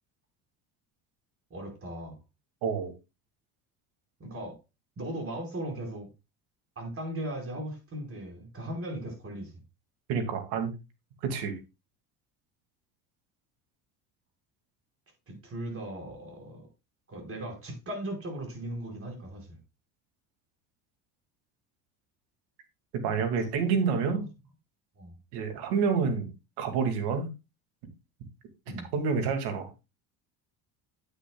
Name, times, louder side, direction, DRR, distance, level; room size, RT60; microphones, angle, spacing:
voice 1, 1.5-2.2 4.2-4.6 5.0-6.1 6.7-9.6 15.3-16.7 17.1-19.6 23.0-24.3 25.0-25.1 28.7-28.9, right 1 dB, 35° right, 5.0 m, -38 dB
voice 2, 2.6-2.9 10.1-10.7 11.2-11.6 22.9-24.2 25.3-26.3 26.6-27.3 28.9-29.7, right 5 dB, 75° right, 2.4 m, -28 dB
9.8 x 8.7 x 2.3 m
supercardioid pair, 90°, 40 cm